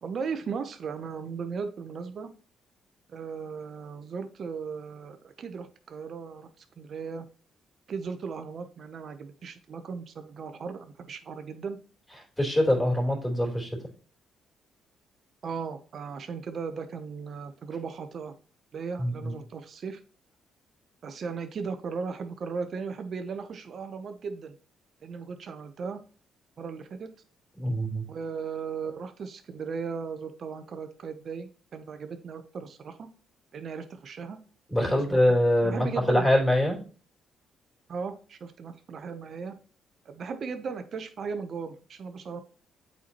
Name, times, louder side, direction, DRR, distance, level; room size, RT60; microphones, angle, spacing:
voice 1, 0.0-2.3 3.1-7.3 7.9-11.8 15.4-18.3 18.7-20.0 21.0-24.5 25.0-26.0 26.6-27.1 28.1-33.1 33.5-34.4 34.9-35.2 35.6-36.3 37.9-39.5 40.0-42.4, right 5 dB, 55° right, 8 dB, 0.7 m, -37 dB
voice 2, 12.4-13.8 19.0-19.3 27.6-28.0 34.7-36.8, left 1 dB, 10° left, -1 dB, 3.3 m, -24 dB
8.2 x 4.4 x 2.9 m, 0.39 s
supercardioid pair, 60°, 0 cm